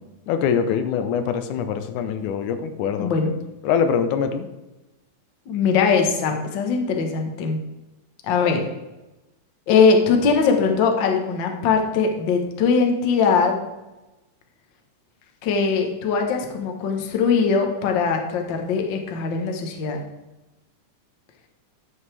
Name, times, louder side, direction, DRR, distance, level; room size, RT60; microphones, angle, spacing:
voice 1, 0.3-3.1 3.6-4.5, left 7 dB, 80° left, 9 dB, 2.1 m, -23 dB
voice 2, 3.0-3.4 5.5-7.6 8.2-8.7 9.7-13.6 15.4-20.0, left 5 dB, 60° left, 3 dB, 1.2 m, -21 dB
10.5 x 7.8 x 3.3 m, 1.0 s
omnidirectional pair, 3.7 m